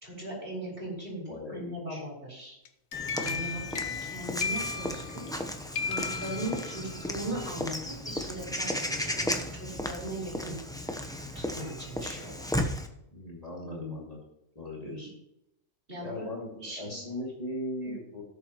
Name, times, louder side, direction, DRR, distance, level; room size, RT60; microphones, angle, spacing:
voice 1, 0.0-2.6 3.1-5.3 5.8-10.6 11.3-12.5 13.6-14.0 14.8-15.1 15.9-17.3, right 1 dB, 45° right, -4 dB, 5.0 m, -39 dB
voice 2, 1.3-2.0 13.1-14.2 14.5-15.1 16.0-18.2, left 1 dB, 30° left, -3 dB, 2.5 m, -39 dB
sound 1, 2.7-5.4 5.7-7.0, left 6 dB, 60° left, 1.1 m, -35 dB
Walk footsteps / Bird vocalization bird call bird song, 2.9-12.9, left 1 dB, 5° left, 0.7 m, -35 dB
17.5 x 7.2 x 3.0 m, 0.84 s
omnidirectional pair, 1.4 m